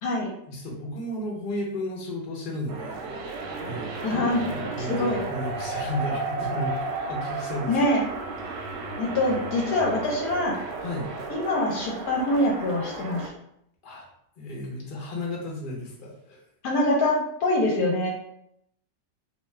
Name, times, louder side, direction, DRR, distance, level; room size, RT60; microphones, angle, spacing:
voice 1, 0.5-6.7 7.1-7.7 10.8-11.1 13.8-14.1 14.4-16.4, left 1 dB, 45° left, -3 dB, 0.6 m, -33 dB
sound 1, 2.7-13.3, right 3 dB, 85° right, 1.2 m, -33 dB
voice 2, 4.0-4.4 4.8-5.2 7.7-8.1 9.0-10.5 11.3-13.3 16.6-18.1, left 1 dB, 70° left, -2 dB, 1.1 m, -24 dB
2.8 x 2.3 x 3.1 m, 0.74 s
omnidirectional pair, 1.9 m